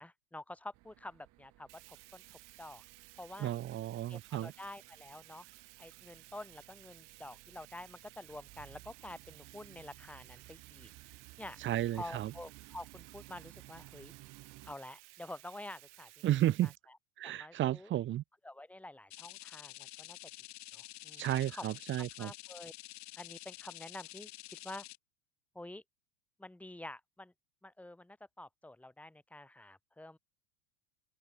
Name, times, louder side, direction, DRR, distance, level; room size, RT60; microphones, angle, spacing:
voice 1, 0.0-2.2 2.6-2.8 3.2-3.5 4.1-5.5 5.8-10.9 11.4-11.6 11.9-14.1 14.6-16.2 16.6-17.0 17.2-17.9 18.4-20.2 20.7-21.6 22.2-22.7 23.2-24.9 25.5-25.8 26.4-27.3 27.6-30.2, left 1 dB, 5° left, 2.7 m, -48 dB
sound 1, 0.7-14.8, right 20 dB, 50° right, 7.3 m, -58 dB
Bathtub (filling or washing), 1.7-16.8, right 20 dB, 70° right, 1.5 m, -57 dB
voice 2, 3.4-4.5 11.6-12.3 16.2-16.7 17.2-18.2 21.2-22.3, right 13 dB, 30° right, 1.1 m, -33 dB
sound 2, 19.1-25.0, left 18 dB, 45° left, 4.1 m, -49 dB
hypercardioid pair, 110°, 37 cm